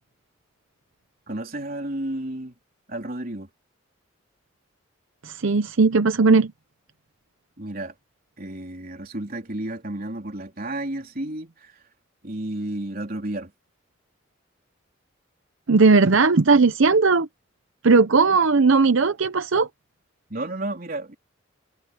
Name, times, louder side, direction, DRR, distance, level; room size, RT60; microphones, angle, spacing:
voice 1, 1.3-2.6 2.9-3.5 7.6-7.9 8.4-11.8 12.2-13.5 18.2-18.4 20.3-21.2, right 1 dB, 45° right, 3.8 m, -32 dB
voice 2, 5.2-6.5 15.7-17.3 17.8-19.7, right 4 dB, 70° right, 0.7 m, -17 dB
head